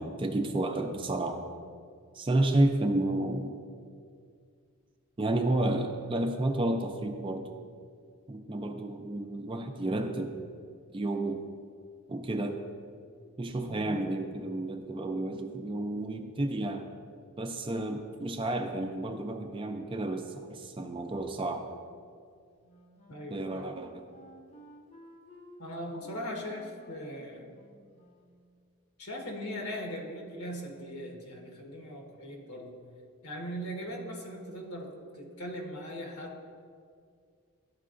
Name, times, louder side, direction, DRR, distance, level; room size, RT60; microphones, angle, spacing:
voice 1, 0.0-1.4 2.1-3.5 5.2-7.5 8.3-10.4 10.9-11.4 12.1-12.6 13.4-16.9 17.4-21.7 23.3-24.0, right 1 dB, 25° right, 5 dB, 0.4 m, -31 dB
Wind instrument woodwind instrument, 22.6-28.5, right 1 dB, 30° left, 0.6 m, -54 dB
voice 2, 23.1-23.7 25.6-27.5 29.0-32.7 33.2-34.9 35.2-36.5, equal, 85° left, 0 dB, 1.3 m, -39 dB
12.0 x 4.5 x 2.5 m, 2.2 s
head